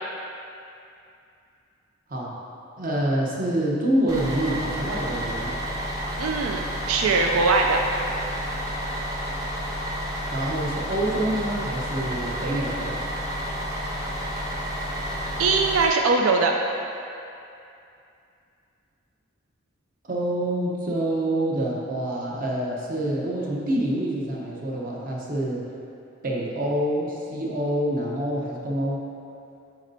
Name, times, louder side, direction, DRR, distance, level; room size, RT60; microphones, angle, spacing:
voice 1, 2.8-5.5 10.3-13.0 20.0-25.6 26.2-29.0, right 1 dB, 40° right, -3 dB, 0.8 m, -26 dB
Bus, 4.1-15.9, equal, 15° right, 0.7 m, -30 dB
voice 2, 6.2-7.8 15.4-16.5, right 4 dB, 85° right, 2 dB, 0.4 m, -21 dB
9.3 x 4.1 x 2.7 m, 2.6 s
head